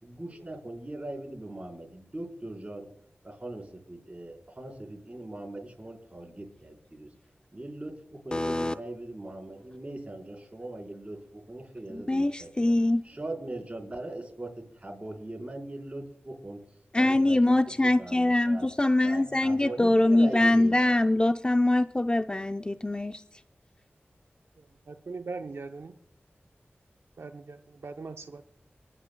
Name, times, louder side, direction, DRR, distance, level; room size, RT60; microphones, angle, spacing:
voice 1, 0.0-2.9 3.2-7.1 7.5-12.7 13.0-21.2, right 1 dB, 30° right, 4.4 m, -40 dB
voice 2, 8.3-8.7 11.9-13.0 16.9-23.2, left 1 dB, 20° left, 0.5 m, -23 dB
voice 3, 24.6-26.0 27.2-28.4, right 4 dB, 75° right, 0.7 m, -40 dB
30.0 x 10.0 x 2.2 m
wide cardioid pair, 65°, 4 cm